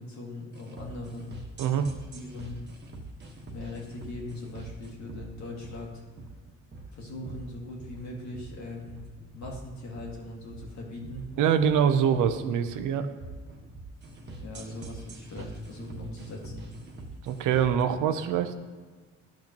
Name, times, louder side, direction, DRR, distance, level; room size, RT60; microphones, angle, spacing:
voice 1, 0.0-1.3 2.1-2.6 3.5-6.0 6.9-9.1 9.3-11.3 14.4-16.6, left 2 dB, 65° left, -1 dB, 2.0 m, -40 dB
sound 1, 0.5-17.8, right 2 dB, 35° right, 1.3 m, -44 dB
voice 2, 11.4-13.1 17.2-18.5, right 8 dB, 85° right, 9 dB, 0.7 m, -24 dB
11.5 x 6.0 x 3.0 m, 1.4 s
cardioid pair, 90°, 30 cm